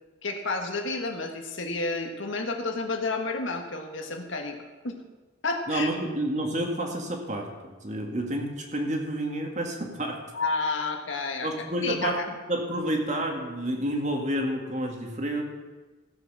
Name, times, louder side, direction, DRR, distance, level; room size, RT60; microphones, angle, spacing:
voice 1, 0.2-4.6 4.8-5.0 5.4-5.9 10.3-12.2, left 3 dB, 85° left, 4 dB, 1.7 m, -30 dB
voice 2, 5.7-7.5 7.8-10.2 11.4-15.4, right 1 dB, 40° right, 2 dB, 2.0 m, -29 dB
15.5 x 7.9 x 6.2 m, 1.2 s
head